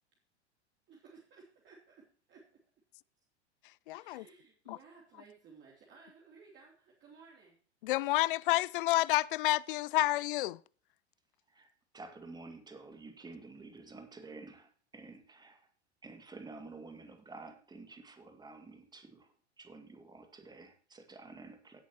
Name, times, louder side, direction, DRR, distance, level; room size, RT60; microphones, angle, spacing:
voice 1, 0.9-2.5 4.0-7.6, right 5 dB, 30° right, 3.2 m, -58 dB
voice 2, 3.9-4.2 4.7-4.8 7.8-10.6, left 17 dB, 50° left, 0.4 m, -29 dB
voice 3, 11.5-15.7 16.0-21.8, right 3 dB, 10° right, 2.3 m, -51 dB
17.5 x 8.3 x 3.0 m
figure-of-eight pair, 95°, 34 cm